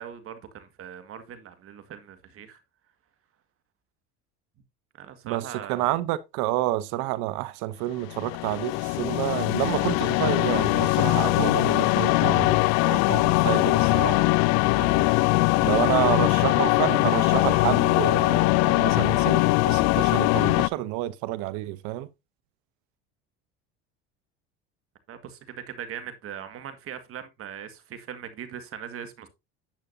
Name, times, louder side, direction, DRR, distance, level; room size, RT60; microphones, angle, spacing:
voice 1, 0.0-2.6 5.0-5.9 25.1-29.3, right 9 dB, 45° right, 1.8 m, -40 dB
voice 2, 5.2-14.3 14.7-15.1 15.6-22.1, right 16 dB, 70° right, 0.8 m, -29 dB
sound 1, 8.0-20.7, left 22 dB, 60° left, 0.5 m, -21 dB
10.5 x 8.3 x 2.7 m
supercardioid pair, 100°, 30 cm